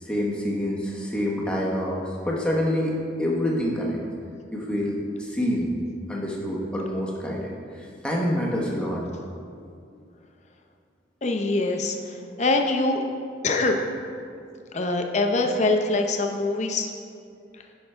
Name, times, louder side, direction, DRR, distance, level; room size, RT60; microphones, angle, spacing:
voice 1, 0.0-4.0 4.5-5.7 6.1-9.1, left 1 dB, 5° left, -4 dB, 0.9 m, -27 dB
voice 2, 11.2-13.0 13.4-13.8 14.7-16.9, left 2 dB, 40° left, 3 dB, 0.6 m, -24 dB
10.0 x 5.6 x 3.3 m, 2.4 s
head